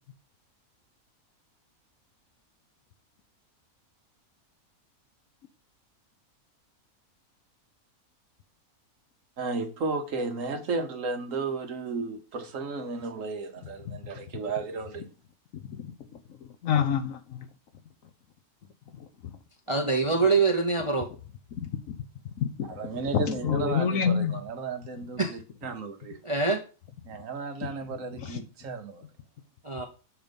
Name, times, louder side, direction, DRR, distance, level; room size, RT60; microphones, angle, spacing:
voice 1, 9.4-15.1 22.6-26.2 27.0-29.1, right 4 dB, 60° right, 1.2 m, -34 dB
voice 2, 15.5-15.9 16.6-17.5 21.6-22.0 22.4-22.8 23.1-24.4 28.2-28.4, left 7 dB, 65° left, 1.1 m, -27 dB
voice 3, 19.7-21.1 25.2-25.4 26.2-26.6 29.6-29.8, right 4 dB, 30° right, 0.6 m, -24 dB
7.0 x 3.9 x 5.1 m
omnidirectional pair, 1.6 m